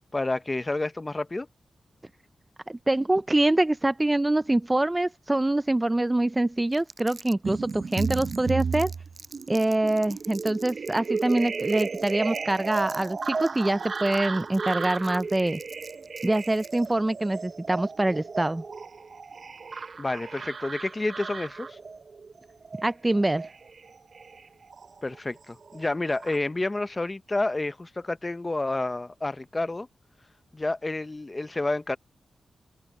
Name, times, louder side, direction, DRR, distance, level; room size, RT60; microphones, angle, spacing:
voice 1, 0.1-1.5 20.0-21.8 25.0-29.9 30.5-32.0, left 2 dB, 25° left, 0.7 m, -29 dB
voice 2, 2.7-8.9 9.5-15.6 16.2-18.6 22.8-23.4, right 1 dB, 15° right, 0.3 m, -25 dB
Crumpling crinkling, 6.7-16.9, right 3 dB, 35° right, 6.2 m, -47 dB
sound 1, 7.4-25.2 25.5-26.4, right 4 dB, 50° right, 0.6 m, -34 dB
wide cardioid pair, 115°, 0 cm